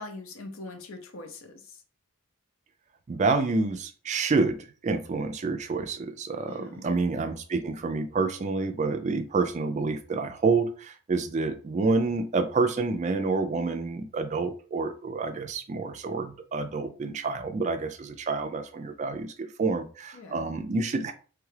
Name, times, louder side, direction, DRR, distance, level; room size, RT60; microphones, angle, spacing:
voice 1, 0.0-1.8 6.5-6.9 20.1-20.5, left 2 dB, 70° left, 6 dB, 0.6 m, -42 dB
voice 2, 3.1-4.6 4.8-21.1, right 3 dB, 35° right, 7 dB, 0.3 m, -28 dB
3.2 x 2.3 x 3.2 m, 0.38 s
head